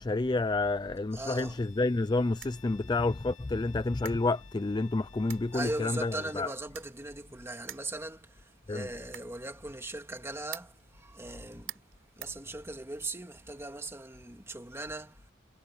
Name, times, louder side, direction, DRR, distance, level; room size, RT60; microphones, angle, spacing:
voice 1, 0.0-6.5 8.7-8.9, left 2 dB, 20° left, 0.4 m, -29 dB
voice 2, 1.1-1.6 5.5-11.8 12.2-15.3, right 2 dB, 15° right, 2.1 m, -39 dB
Bowed string instrument, 1.3-6.5, left 9 dB, 80° left, 2.9 m, -57 dB
sound 1, 2.4-13.1, right 12 dB, 80° right, 3.8 m, -52 dB
head